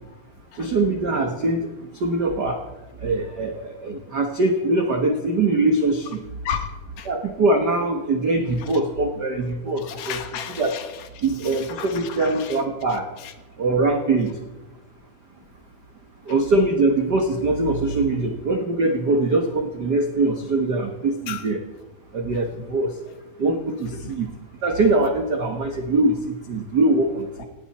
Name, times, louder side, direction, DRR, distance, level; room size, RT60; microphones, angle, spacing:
voice 1, 0.6-1.7 2.0-2.6 3.0-6.2 7.0-10.2 10.6-10.8 11.2-13.1 13.6-14.4 16.3-21.6 22.1-22.9 23.4-24.3 24.6-27.4, right 2 dB, 65° right, 4 dB, 1.0 m, -22 dB
voice 2, 6.4-7.1 8.6-8.7 9.7-12.6 13.2-13.3 21.3-21.4 24.0-24.2 27.4-27.5, left 8 dB, 70° left, 8 dB, 2.8 m, -34 dB
18.0 x 17.5 x 4.3 m, 1.1 s
omnidirectional pair, 3.9 m